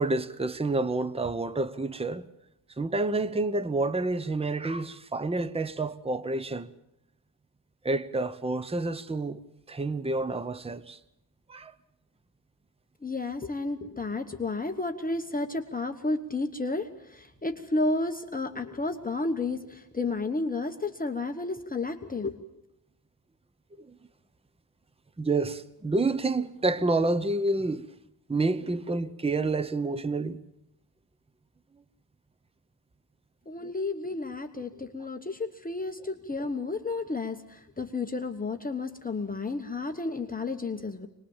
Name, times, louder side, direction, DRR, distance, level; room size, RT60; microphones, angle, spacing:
voice 1, 0.0-2.3 2.8-6.7 7.8-9.4 9.7-11.0 11.5-11.7 25.2-27.9 28.3-30.4, right 2 dB, 15° right, 0.8 m, -28 dB
voice 2, 13.0-22.4 33.5-41.1, left 3 dB, 20° left, 1.1 m, -32 dB
25.0 x 20.5 x 7.3 m
wide cardioid pair, 145°, 42 cm